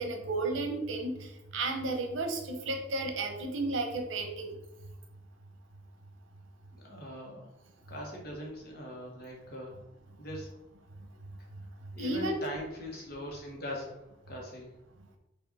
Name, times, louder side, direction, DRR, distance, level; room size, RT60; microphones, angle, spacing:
voice 1, 0.0-4.5 12.0-12.4, right 2 dB, 85° right, 3 dB, 0.8 m, -33 dB
voice 2, 6.7-7.5 7.9-9.8 10.2-10.6 12.0-14.7, equal, 55° left, -1 dB, 1.2 m, -41 dB
4.9 x 2.6 x 4.1 m, 0.94 s
head